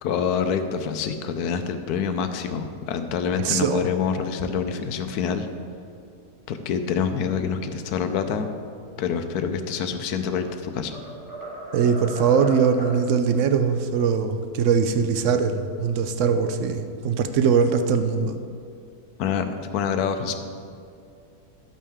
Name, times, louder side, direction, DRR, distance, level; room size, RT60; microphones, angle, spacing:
voice 1, 0.0-5.5 6.5-8.5 9.0-11.0 19.2-20.3, left 7 dB, 70° left, 7 dB, 1.1 m, -26 dB
voice 2, 3.4-3.9 11.7-18.4, right 6 dB, 70° right, 8 dB, 0.7 m, -21 dB
sound 1, 10.1-10.5 10.9-13.0, right 1 dB, 15° right, 1.3 m, -36 dB
12.0 x 8.4 x 3.6 m, 2.4 s
omnidirectional pair, 1.8 m